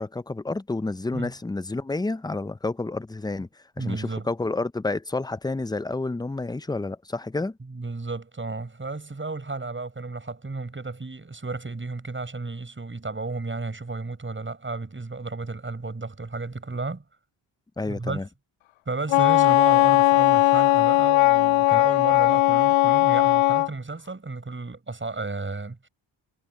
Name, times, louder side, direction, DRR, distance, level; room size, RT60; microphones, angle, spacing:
voice 1, 0.0-3.5 3.8-7.6 17.8-18.3, left 3 dB, 10° left, 0.6 m, -29 dB
voice 2, 3.8-4.3 7.6-17.0 17.8-18.2 18.9-25.9, right 3 dB, 25° right, 7.5 m, -33 dB
Wind instrument woodwind instrument, 19.1-23.7, left 17 dB, 80° left, 0.6 m, -18 dB
cardioid pair, 75°, 47 cm